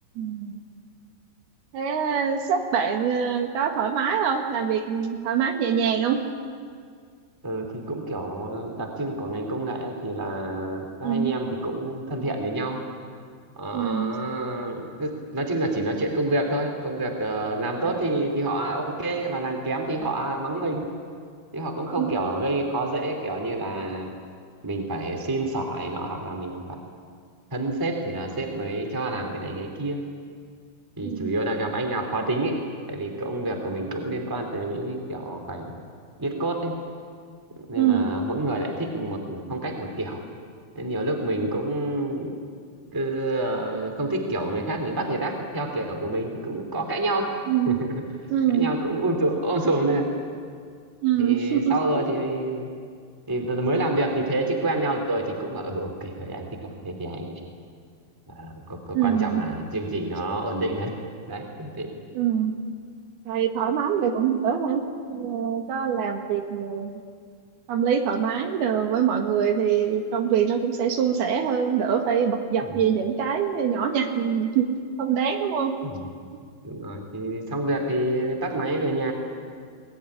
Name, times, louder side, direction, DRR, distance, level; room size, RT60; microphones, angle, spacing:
voice 1, 0.2-0.6 1.7-6.2 11.0-11.4 13.7-14.1 22.0-22.1 31.0-31.3 37.8-38.1 41.4-41.5 47.5-47.8 48.3-49.0 51.0-52.0 58.9-59.4 62.1-62.5 63.3-64.8 65.1-67.0 67.7-74.7 75.0-75.7, right 8 dB, 75° right, 5 dB, 3.4 m, -24 dB
voice 2, 7.4-12.8 13.6-20.8 21.5-24.1 24.6-26.9 27.5-30.0 31.0-32.6 32.9-35.7 36.2-36.7 37.7-40.2 40.7-42.4 42.9-47.3 47.7-48.0 48.5-50.1 51.2-52.7 53.3-57.4 58.3-61.9 72.6-72.9 75.8-76.1 76.6-79.1, right 2 dB, 5° right, 3 dB, 2.2 m, -28 dB
23.0 x 19.5 x 9.9 m, 2.1 s
omnidirectional pair, 4.7 m